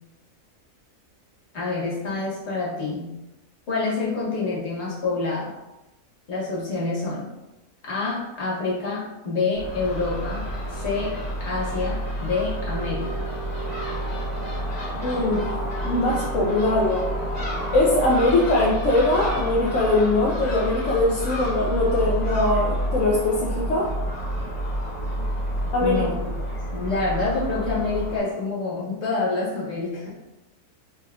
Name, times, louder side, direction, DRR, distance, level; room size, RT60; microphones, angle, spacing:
voice 1, 1.5-3.1 3.7-5.5 6.3-7.2 7.8-13.3 25.8-26.1 26.7-30.1, left 3 dB, 50° left, -6 dB, 1.5 m, -27 dB
Crow / Gull seagull, 9.5-28.2, equal, 30° left, 1.1 m, -29 dB
voice 2, 15.0-15.5 15.8-17.1 17.7-23.9 25.7-26.0, left 2 dB, 65° left, -4 dB, 0.9 m, -21 dB
4.7 x 3.0 x 2.3 m, 0.99 s
omnidirectional pair, 1.6 m